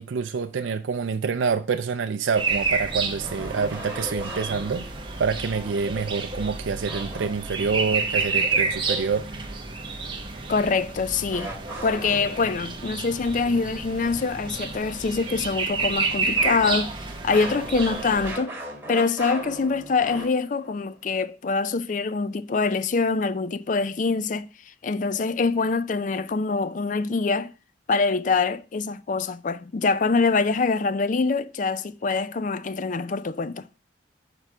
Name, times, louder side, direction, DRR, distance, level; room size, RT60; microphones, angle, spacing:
voice 1, 0.0-4.9 5.2-9.3, right 5 dB, 80° right, 0.4 m, -27 dB
sound 1, 2.4-18.3, right 4 dB, 25° right, 1.0 m, -30 dB
sound 2, 3.2-5.2 6.9-7.7 11.3-12.8 16.4-20.7, right 1 dB, 10° right, 2.4 m, -37 dB
voice 2, 10.5-11.5 11.8-16.9 17.2-18.5 18.9-27.5 27.9-33.6, left 4 dB, 40° left, 0.4 m, -24 dB
6.7 x 4.7 x 6.0 m
head